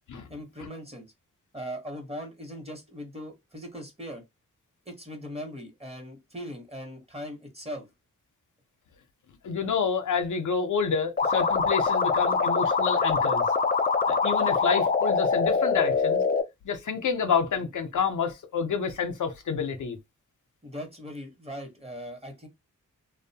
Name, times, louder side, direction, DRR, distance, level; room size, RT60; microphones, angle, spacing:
voice 1, 0.3-1.1 1.5-4.2 4.9-7.9 20.6-22.5, equal, 20° right, 0.9 m, -39 dB
voice 2, 9.4-13.5 14.1-16.2 16.6-20.0, left 6 dB, 70° left, 0.6 m, -28 dB
sound 1, 11.2-16.4, left 4 dB, 30° left, 0.4 m, -24 dB
2.6 x 2.1 x 2.7 m
cardioid pair, 70°, 32 cm